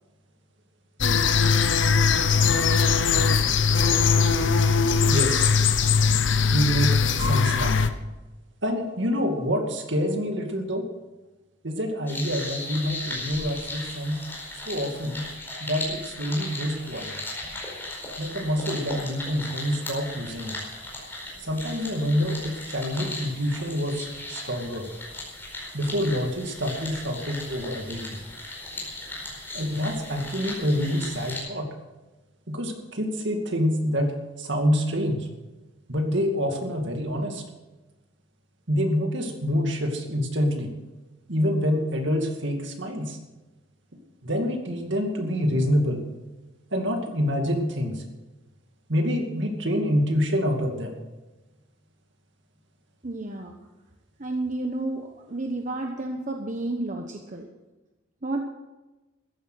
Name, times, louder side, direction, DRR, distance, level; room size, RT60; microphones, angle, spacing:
sound 1, 1.0-7.9, left 5 dB, 65° left, 0.9 m, -20 dB
voice 1, 5.1-5.5 6.5-7.8 8.6-10.9 11.6-14.2 14.5-15.2 15.6-17.2 18.2-20.6 21.4-24.9 25.7-28.2 29.5-31.7 32.5-34.1 34.4-35.3 35.9-37.4 38.7-40.7 41.3-43.2 44.2-46.0 46.7-48.0 48.9-51.0, equal, 60° right, 3 dB, 2.4 m, -26 dB
sound 2, 12.1-31.4, left 2 dB, 10° left, 4.7 m, -37 dB
voice 2, 53.0-53.5 54.2-57.5 58.2-58.5, right 2 dB, 40° right, 3 dB, 1.0 m, -31 dB
14.0 x 11.0 x 6.4 m, 1.1 s
head